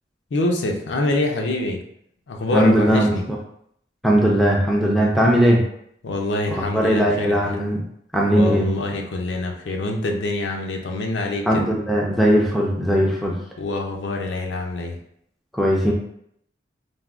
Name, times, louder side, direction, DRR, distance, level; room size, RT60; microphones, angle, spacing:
voice 1, 0.3-1.8 2.3-3.2 6.0-7.6 8.3-11.7 13.6-15.0, left 2 dB, 70° left, 2 dB, 0.4 m, -25 dB
voice 2, 2.5-3.4 4.0-5.6 6.7-7.8 8.1-8.7 11.5-13.4 15.5-15.9, equal, ahead, -2 dB, 0.4 m, -18 dB
3.4 x 2.2 x 2.4 m, 0.71 s
head